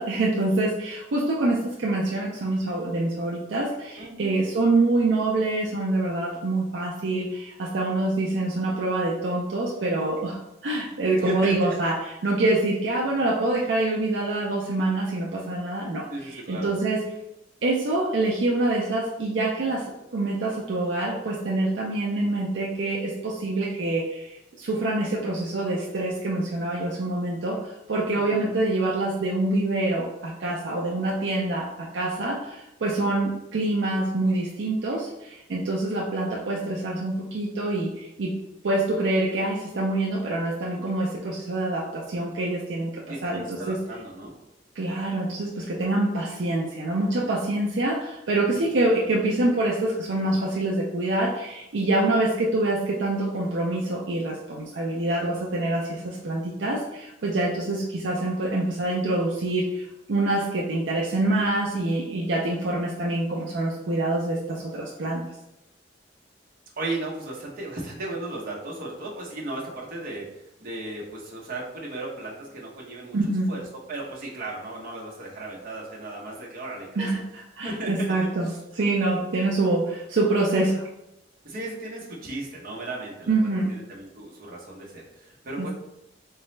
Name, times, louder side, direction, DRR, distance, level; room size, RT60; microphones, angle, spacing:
voice 1, 0.0-10.4 10.6-17.0 17.6-19.9 20.1-38.3 38.6-42.9 43.2-43.8 44.8-65.2 73.1-73.5 77.0-77.2 77.5-78.5 78.7-80.8 83.3-83.7 85.6-85.7, right 2 dB, 70° right, -3 dB, 0.5 m, -26 dB
voice 2, 4.0-4.4 11.2-11.8 16.1-16.7 28.1-28.5 43.1-44.3 48.6-48.8 66.8-73.2 73.5-77.1 77.6-78.1 78.4-78.6 81.4-83.3 83.7-85.7, right 2 dB, 50° right, -3 dB, 0.9 m, -35 dB
3.9 x 2.2 x 3.1 m, 0.88 s
head